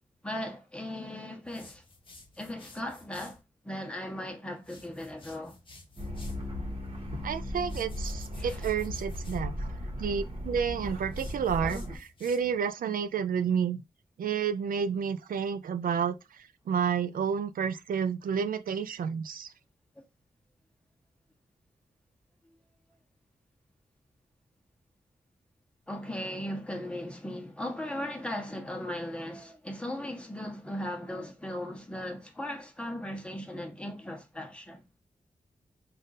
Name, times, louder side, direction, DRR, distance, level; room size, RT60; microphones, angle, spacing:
voice 1, 0.2-1.8 2.4-5.6 8.4-8.6 25.9-34.8, left 1 dB, 5° left, 1.1 m, -37 dB
sound 1, 1.4-3.4 4.6-6.5 7.6-9.4 11.1-12.7, left 3 dB, 35° left, 0.9 m, -53 dB
sound 2, 6.0-12.0, left 1 dB, 45° right, 1.2 m, -36 dB
voice 2, 7.2-9.7 10.0-13.8 14.2-19.5, right 7 dB, 85° right, 0.4 m, -30 dB
3.6 x 2.6 x 3.9 m
wide cardioid pair, 85°, 14 cm